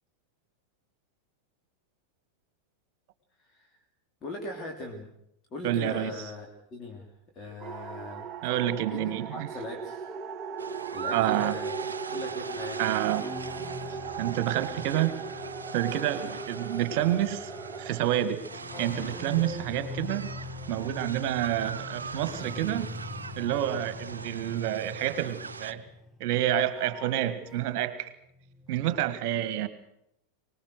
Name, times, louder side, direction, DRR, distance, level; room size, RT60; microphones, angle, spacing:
voice 1, 4.2-5.1 5.5-6.5 6.7-8.3 8.9-10.1 10.9-11.7 12.1-13.0, left 2 dB, 25° left, 1 dB, 3.3 m, -39 dB
voice 2, 5.6-6.1 8.4-9.5 11.1-11.6 12.8-13.2 14.2-15.2 15.7-17.5 17.8-18.4 18.8-20.3 20.7-22.9 23.4-25.8 26.2-28.1 28.7-29.7, right 12 dB, 45° right, 14 dB, 1.7 m, -28 dB
sound 1, 7.6-18.2, right 5 dB, 30° right, 1.2 m, -38 dB
sound 2, 10.6-25.7, right 5 dB, 70° right, 0.8 m, -41 dB
sound 3, 12.2-28.0 28.2-29.1, left 3 dB, ahead, 1.4 m, -43 dB
24.5 x 20.0 x 6.5 m, 0.77 s
figure-of-eight pair, 90°, 0 cm